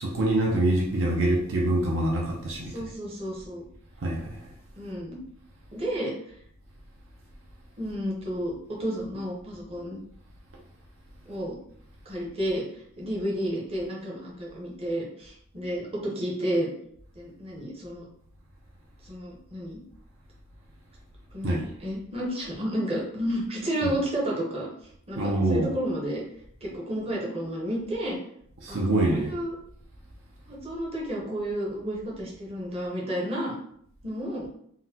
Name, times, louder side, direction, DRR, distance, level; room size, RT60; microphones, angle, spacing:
voice 1, 0.0-2.7 4.0-4.4 21.4-21.7 23.8-23.9 25.2-25.7 28.6-29.3, right 1 dB, 60° right, -2 dB, 0.5 m, -25 dB
voice 2, 2.7-3.6 4.8-5.2 5.7-6.1 7.8-10.0 11.2-11.6 12.0-16.7 17.1-18.1 19.0-19.8 21.3-24.7 25.1-26.2 26.6-28.2 28.7-29.6 30.5-33.6 34.0-34.5, equal, 25° right, -3 dB, 0.8 m, -31 dB
3.8 x 2.1 x 2.8 m, 0.67 s
head